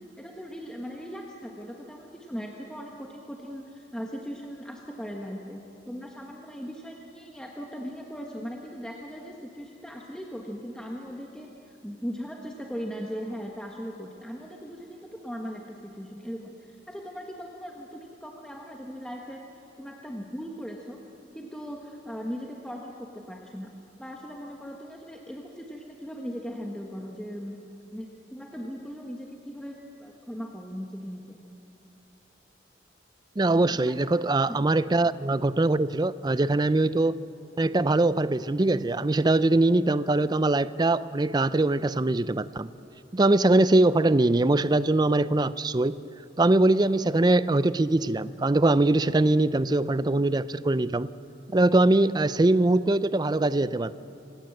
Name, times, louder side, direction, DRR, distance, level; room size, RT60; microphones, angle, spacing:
voice 1, 0.2-19.4 19.8-21.0 21.3-23.7 24.0-27.6 27.9-31.4 33.7-34.0 34.5-34.6, equal, 5° left, 0 dB, 1.3 m, -39 dB
voice 2, 33.4-37.2 37.6-42.7 43.1-46.0 46.4-51.1 51.5-53.9, right 2 dB, 25° right, 16 dB, 0.4 m, -22 dB
26.0 x 17.5 x 7.8 m, 2.9 s
head